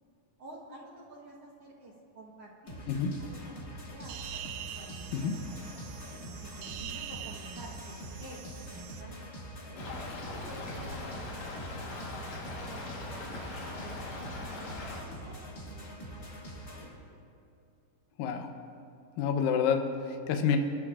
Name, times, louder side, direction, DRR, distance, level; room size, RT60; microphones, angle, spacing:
voice 1, 0.4-2.8 3.2-3.6 3.9-4.3 4.8-5.8 6.4-9.1 9.5-9.8 10.3-13.4 13.8-15.3 15.7-16.8, right 1 dB, 55° right, -2 dB, 1.8 m, -51 dB
sound 1, 2.7-16.9, equal, 45° left, 1.2 m, -45 dB
sound 2, 4.0-9.0, right 9 dB, 80° right, 2.0 m, -44 dB
Stream / Trickle dribble, 9.8-15.0, left 2 dB, 60° left, 2.2 m, -40 dB
voice 2, 18.2-18.5 19.2-20.6, left 7 dB, 80° left, 4 dB, 2.5 m, -28 dB
23.5 x 12.0 x 2.5 m, 2.5 s
omnidirectional pair, 4.1 m